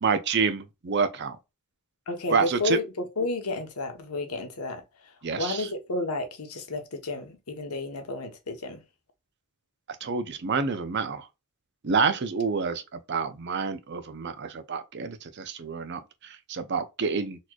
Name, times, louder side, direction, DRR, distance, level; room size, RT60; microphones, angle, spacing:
voice 1, 0.0-1.4 2.3-2.8 5.2-5.7 10.0-11.3 11.8-17.4, right 5 dB, 50° right, 0.5 m, -28 dB
voice 2, 2.1-8.8, left 2 dB, 80° left, 1.0 m, -32 dB
4.1 x 3.1 x 2.3 m
head